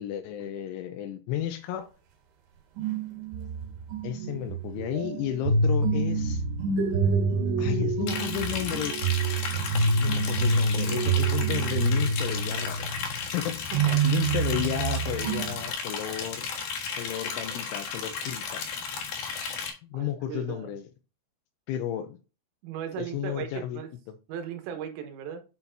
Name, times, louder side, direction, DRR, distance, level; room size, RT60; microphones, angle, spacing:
voice 1, 0.0-1.9 4.0-6.4 7.6-9.0 10.0-12.9 13.3-16.5 16.9-18.6 19.8-20.9 21.7-22.2 23.0-23.8 24.1-24.2, left 11 dB, 80° left, 2.9 m, -33 dB
sound 1, 2.8-13.2 13.7-15.7, right 3 dB, 70° right, 3.9 m, -27 dB
Liquid, 8.1-19.7, left 6 dB, 60° left, 2.6 m, -34 dB
voice 2, 13.7-14.0 19.9-20.7 22.6-23.9 24.3-25.4, right 8 dB, 85° right, 4.0 m, -37 dB
9.3 x 5.6 x 2.7 m
omnidirectional pair, 5.9 m